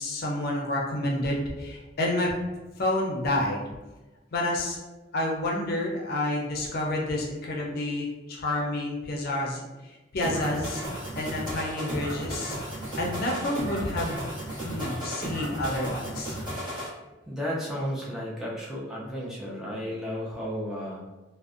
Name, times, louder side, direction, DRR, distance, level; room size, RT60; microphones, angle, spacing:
voice 1, 0.0-2.4 2.8-3.6 4.3-4.8 5.1-9.6 10.1-10.9 11.2-12.6 13.0-14.3 14.6-16.4, left 1 dB, 55° left, -2 dB, 0.5 m, -29 dB
sound 1, 10.2-16.9, equal, 25° right, 0.9 m, -34 dB
voice 2, 17.3-21.0, equal, 5° right, -6 dB, 0.4 m, -33 dB
2.5 x 2.0 x 2.4 m, 1.1 s
head